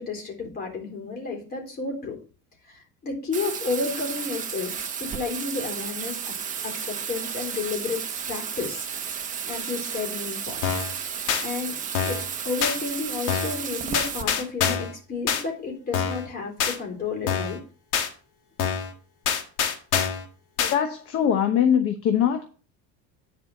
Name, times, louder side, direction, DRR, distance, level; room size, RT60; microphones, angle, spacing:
voice 1, 0.0-2.2 2.7-6.2 6.6-8.0 8.3-8.8 9.5-10.9 11.4-11.7 12.1-12.2 12.4-17.6, left 4 dB, 30° left, 0 dB, 3.9 m, -31 dB
Bathtub (filling or washing), 3.3-14.2, right 7 dB, 25° right, 1.0 m, -33 dB
sound 1, 10.6-10.9 11.3-11.4 12.0-12.3 12.6-12.8 13.3-13.6 13.9-14.9 15.3-15.4 15.9-16.3 16.6-16.8 17.3-17.6 17.9-18.1 18.6-18.9 19.3-20.2 20.6-20.8, left 7 dB, 80° left, 1.9 m, -25 dB
voice 2, 20.6-22.5, left 8 dB, 45° left, 6 dB, 1.1 m, -22 dB
10.5 x 5.0 x 5.9 m, 0.38 s
cardioid pair, 165°, 33 cm